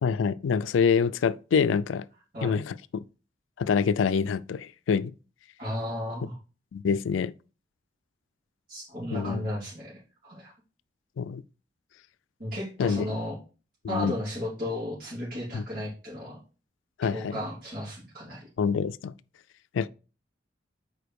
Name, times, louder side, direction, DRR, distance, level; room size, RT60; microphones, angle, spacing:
voice 1, 0.0-2.1 2.4-3.0 3.6-5.1 6.7-7.3 9.1-9.4 11.2-11.4 12.8-13.0 13.8-14.1 15.5-15.6 17.0-17.4 18.6-19.1 19.7-19.9, left 6 dB, 90° left, 0.4 m, -26 dB
voice 2, 5.6-6.4 8.7-10.5 12.4-13.4 13.9-16.4 17.0-18.5, left 1 dB, 50° right, 3.4 m, -34 dB
5.1 x 4.5 x 4.7 m
head